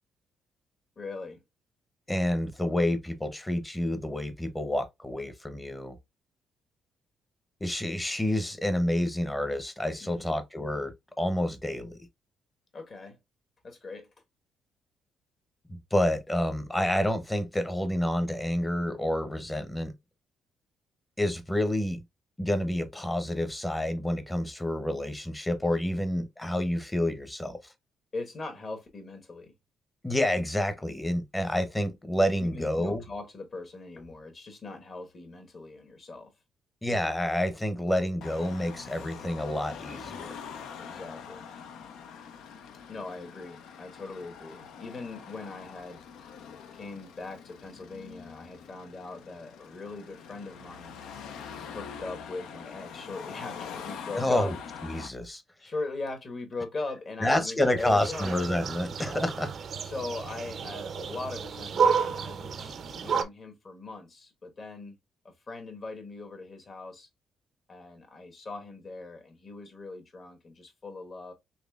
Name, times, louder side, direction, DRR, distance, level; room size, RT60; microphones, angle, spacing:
voice 1, 1.0-1.4 10.0-10.4 12.7-13.2 13.6-14.1 28.1-29.5 32.4-36.3 40.8-41.5 42.9-46.0 46.7-51.0 51.7-54.5 55.6-58.5 59.8-65.0 65.5-67.1 67.7-71.3, left 3 dB, 45° left, 1.3 m, -40 dB
voice 2, 2.1-6.0 7.6-12.0 15.7-19.9 21.2-22.0 22.4-27.7 30.0-33.0 36.8-40.3 54.2-54.5 54.8-55.4 57.2-59.5, left 1 dB, 10° left, 0.8 m, -29 dB
Car passing by / Traffic noise roadway noise / Engine, 38.2-55.1, left 7 dB, 85° left, 0.5 m, -44 dB
sound 1, 57.8-63.2, right 6 dB, 55° right, 0.5 m, -31 dB
4.1 x 3.1 x 2.3 m
cardioid pair, 90°, 0 cm